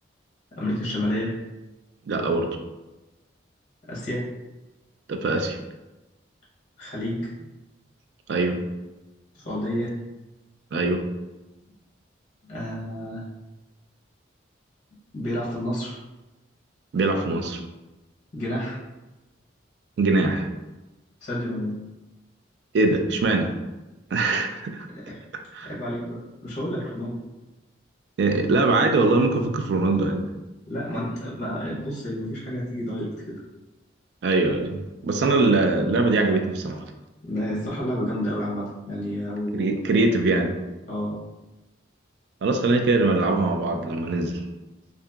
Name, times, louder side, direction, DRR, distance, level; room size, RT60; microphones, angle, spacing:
voice 1, 0.6-1.3 3.8-4.3 6.8-7.5 9.3-9.9 12.5-13.2 15.1-16.0 18.3-18.8 21.2-21.8 24.9-25.2 25.6-27.2 30.7-33.3 37.2-39.7 40.9-41.2, equal, 40° left, -6 dB, 0.7 m, -30 dB
voice 2, 2.1-2.6 5.1-5.6 8.3-8.6 10.7-11.0 16.9-17.6 20.0-20.5 22.7-23.5 24.1-24.9 25.5-25.7 28.2-30.3 34.2-36.8 39.5-40.6 42.4-44.4, right 3 dB, 60° right, 5 dB, 0.3 m, -22 dB
2.8 x 2.5 x 2.3 m, 1.1 s
head